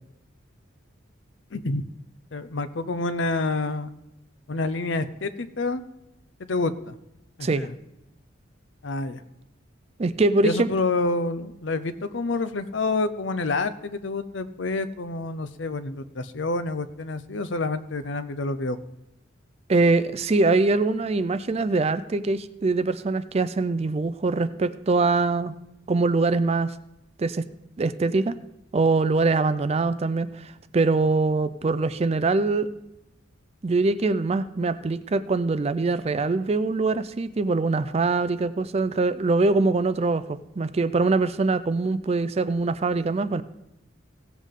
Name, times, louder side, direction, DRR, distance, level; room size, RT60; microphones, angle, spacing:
voice 1, 1.5-1.9 2.3-3.9 4.5-5.8 6.4-6.9 7.4-7.7 8.8-9.2 10.4-18.8, left 3 dB, 65° left, 12 dB, 0.6 m, -28 dB
voice 2, 10.0-10.7 19.7-25.5 25.9-26.7 27.2-27.5 27.8-28.4 28.7-32.7 33.6-43.4, right 3 dB, 30° right, 13 dB, 0.4 m, -23 dB
17.0 x 7.2 x 3.7 m, 0.88 s
head